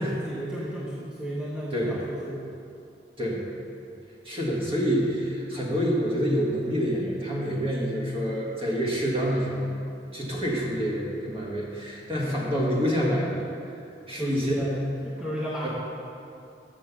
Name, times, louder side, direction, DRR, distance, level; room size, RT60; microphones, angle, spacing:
voice 1, 0.0-2.4 14.2-14.8 15.0-15.7, right 1 dB, 5° right, -6 dB, 0.8 m, -33 dB
voice 2, 4.2-9.7 10.1-13.4 14.1-14.8 15.6-15.7, equal, 30° right, -4 dB, 1.6 m, -27 dB
6.9 x 6.1 x 6.0 m, 2.6 s
head